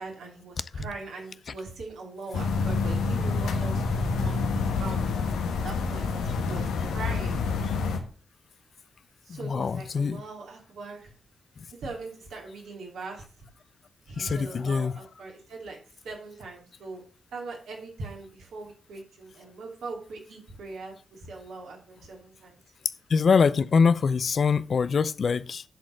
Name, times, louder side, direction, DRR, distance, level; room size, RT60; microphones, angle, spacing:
voice 1, 0.0-3.8 4.1-5.0 5.6-7.4 9.3-11.1 11.7-13.2 14.1-15.8 16.0-17.0 17.3-22.6, right 3 dB, 75° right, 2.8 m, -40 dB
sound 1, 2.3-8.0, left 4 dB, 85° left, 1.2 m, -27 dB
voice 2, 9.3-10.2 14.2-14.9 23.1-25.6, left 5 dB, 60° left, 0.5 m, -24 dB
10.5 x 4.1 x 6.4 m
supercardioid pair, 45°, 0 cm